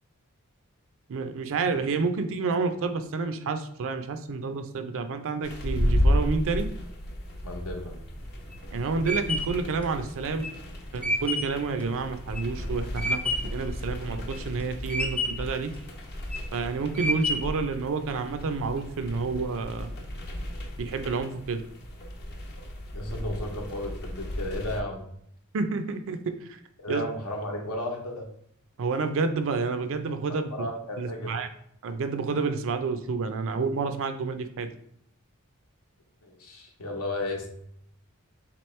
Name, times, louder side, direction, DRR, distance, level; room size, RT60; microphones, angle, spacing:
voice 1, 1.1-6.7 8.7-10.5 10.9-15.7 16.5-19.9 20.8-21.6 25.5-26.6 26.9-27.0 28.8-30.7 31.0-31.5 31.8-34.7, right 4 dB, 65° right, 8 dB, 0.4 m, -29 dB
sound 1, 5.4-24.8, equal, 50° left, 0.7 m, -33 dB
voice 2, 7.4-7.9 22.9-25.0 26.8-28.2 30.3-31.3 36.2-37.5, left 1 dB, 80° left, 2 dB, 0.9 m, -34 dB
sound 2, 8.2-13.6 14.1-14.6 14.9-15.6 16.1-16.5 17.0-17.7, left 1 dB, 5° left, 0.3 m, -30 dB
3.8 x 2.9 x 3.1 m, 0.70 s
head